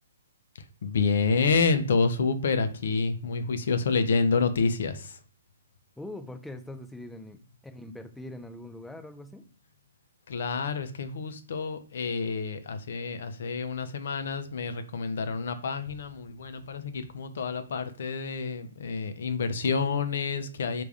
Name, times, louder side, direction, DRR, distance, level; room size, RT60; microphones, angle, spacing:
voice 1, 0.8-5.2 10.3-20.8, left 4 dB, 60° left, 9 dB, 0.5 m, -28 dB
voice 2, 6.0-9.4, left 1 dB, 5° left, 7 dB, 0.4 m, -42 dB
3.4 x 2.4 x 3.3 m, 0.42 s
figure-of-eight pair, 125°, 0 cm